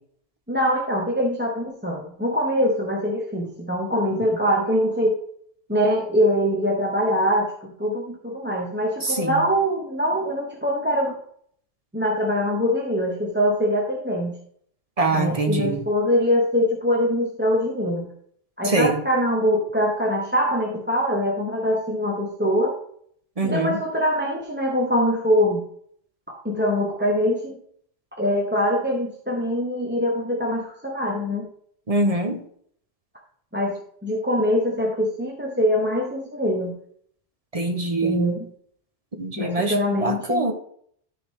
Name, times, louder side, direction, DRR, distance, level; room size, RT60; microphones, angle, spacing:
voice 1, 0.5-5.2 5.7-11.2 11.9-14.4 15.1-18.1 18.6-22.7 23.4-25.6 26.3-27.5 28.2-31.5 33.5-36.7 38.0-38.5 39.4-40.5, equal, 10° right, -1 dB, 1.0 m, -23 dB
voice 2, 9.0-9.4 15.0-15.8 18.6-19.0 23.4-23.8 31.9-32.4 37.5-38.2 39.1-40.5, right 2 dB, 35° right, 5 dB, 1.1 m, -24 dB
13.0 x 4.8 x 3.7 m, 0.62 s
omnidirectional pair, 1.2 m